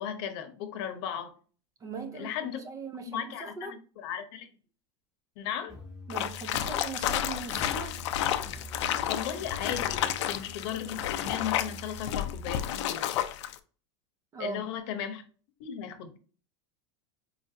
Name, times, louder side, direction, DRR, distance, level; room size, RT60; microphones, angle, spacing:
voice 1, 0.0-1.3 2.1-2.6 3.1-4.5 5.4-5.7 9.1-13.1 14.4-15.2 15.6-16.2, left 9 dB, 65° left, 0.8 m, -36 dB
voice 2, 1.8-3.8 6.1-8.0 14.3-14.6, right 5 dB, 20° right, 0.4 m, -40 dB
sound 1, 5.7-12.5, left 1 dB, 5° right, 1.2 m, -46 dB
sound 2, 6.1-13.6, left 11 dB, 85° left, 0.4 m, -31 dB
4.5 x 2.5 x 2.7 m
supercardioid pair, 140°, 15 cm